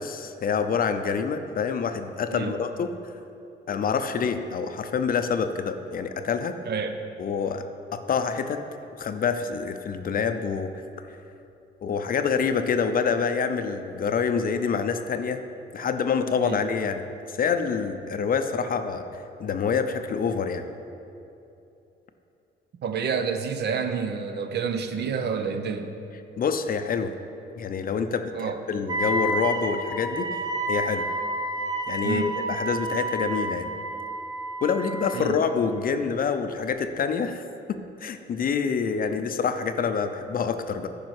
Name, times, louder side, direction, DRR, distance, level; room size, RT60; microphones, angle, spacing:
voice 1, 0.0-2.9 3.7-6.6 7.2-7.6 7.9-8.6 9.0-10.7 11.8-15.4 15.7-17.0 17.3-20.6 26.4-27.1 27.5-31.1 31.9-33.7 34.6-37.4 37.7-40.9, left 6 dB, 45° left, 9 dB, 0.5 m, -27 dB
voice 2, 6.7-7.0 16.4-16.6 22.8-26.0 28.3-28.6 32.0-32.3 35.1-35.4, right 6 dB, 55° right, 7 dB, 0.7 m, -29 dB
Wind instrument woodwind instrument, 28.9-35.3, right 2 dB, 20° right, 1.0 m, -30 dB
9.7 x 5.2 x 4.7 m, 2.8 s
cardioid pair, 90°, 20 cm